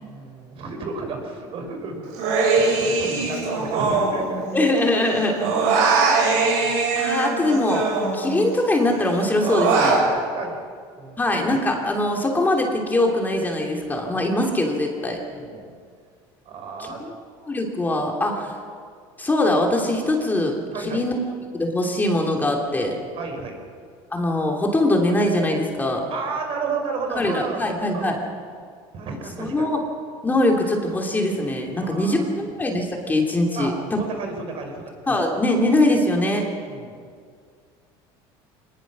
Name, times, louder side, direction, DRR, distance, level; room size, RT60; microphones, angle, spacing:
voice 1, 0.1-4.4 4.9-5.3 6.3-7.1 9.7-10.6 11.0-11.2 14.0-14.4 15.3-15.7 16.5-17.0 20.7-21.0 23.1-23.6 26.1-27.6 27.9-28.1 28.9-29.7 31.8-32.1 33.6-35.2 36.4-37.0, right 4 dB, 55° right, 4 dB, 5.1 m, -33 dB
Human voice, 2.1-4.8 5.0-8.5 8.9-10.0, right 4 dB, 80° right, 7.6 m, -22 dB
voice 2, 4.5-5.7 6.9-7.9 8.1-10.0 11.2-15.2 16.8-17.1 17.4-18.5 19.2-21.2 21.5-23.0 24.1-26.1 27.1-28.2 29.4-29.8 30.2-33.7 35.1-36.4, left 1 dB, 15° left, 1 dB, 3.0 m, -22 dB
24.0 x 20.5 x 6.2 m, 2.1 s
cardioid pair, 120°, 12 cm